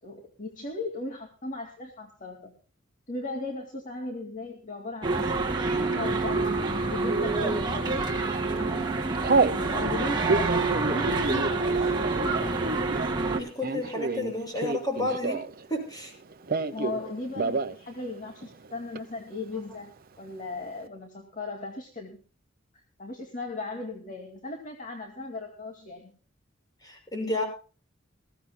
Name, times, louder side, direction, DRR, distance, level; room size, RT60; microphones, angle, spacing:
voice 1, 0.0-2.5 3.1-5.3 5.9-6.5 6.8-8.1 8.5-8.9 9.6-10.6 10.9-12.6 16.7-22.2 22.7-26.1, left 2 dB, 40° left, 2 dB, 2.4 m, -37 dB
sound 1, 5.0-13.4, right 3 dB, 25° right, 2.2 m, -27 dB
Telephone, 7.1-7.6 8.2-8.4 8.7-9.6 10.1-15.6 15.9-17.0 17.3-17.8 18.1-18.2 18.4-19.0, right 3 dB, 50° right, 1.0 m, -29 dB
voice 2, 13.4-15.4 15.7-16.1 26.8-27.4, left 1 dB, 20° left, 3 dB, 6.4 m, -31 dB
21.0 x 16.5 x 2.2 m, 0.37 s
head